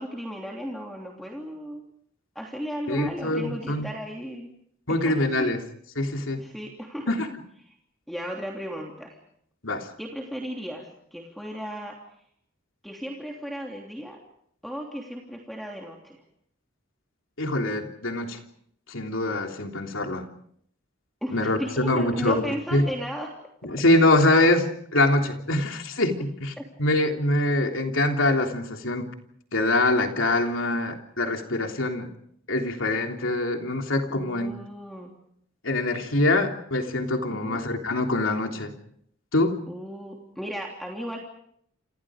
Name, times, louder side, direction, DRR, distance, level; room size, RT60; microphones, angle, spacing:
voice 1, 0.0-1.9 2.3-4.5 4.9-5.5 6.4-7.1 7.6-7.7 8.1-9.2 10.0-12.0 12.8-14.2 14.6-16.2 21.2-23.3 26.6-26.7 34.1-35.1 37.3-37.6 39.7-41.2, equal, ahead, 0 dB, 3.1 m, -35 dB
voice 2, 2.9-3.9 4.9-5.6 6.0-6.4 7.1-7.3 9.6-9.9 17.4-18.4 18.9-20.3 21.3-22.4 22.7-22.9 23.6-29.1 29.5-32.1 32.5-34.5 35.6-38.7 39.3-39.6, left 2 dB, 75° left, 3 dB, 3.3 m, -24 dB
29.0 x 27.0 x 5.1 m, 0.69 s
head